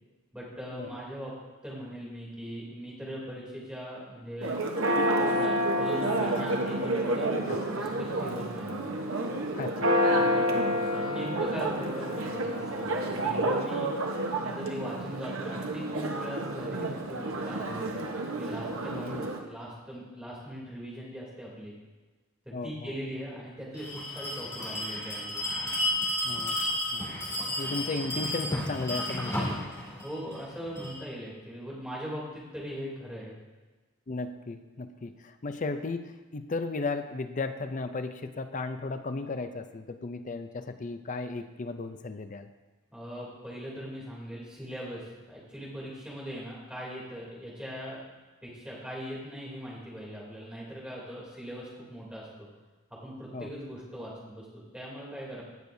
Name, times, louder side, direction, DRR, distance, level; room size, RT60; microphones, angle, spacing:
voice 1, 0.3-1.3 1.6-4.5 5.0-7.3 7.8-8.8 10.1-13.9 14.4-18.0 18.3-21.7 22.4-25.4 30.0-33.3 42.9-48.0 48.4-52.5 52.9-55.4, equal, 5° right, -6 dB, 2.9 m, -40 dB
Church bell, 4.4-19.4, right 1 dB, 80° right, 1.0 m, -29 dB
voice 2, 9.6-9.9 18.9-19.3 22.5-23.0 26.2-26.6 26.9-27.1 27.6-29.6 34.1-42.5 53.3-53.5, left 3 dB, 35° left, 9 dB, 0.5 m, -35 dB
Bell, 23.7-31.0, left 1 dB, 15° left, 2.6 m, -32 dB
17.5 x 6.5 x 2.7 m, 1.3 s
head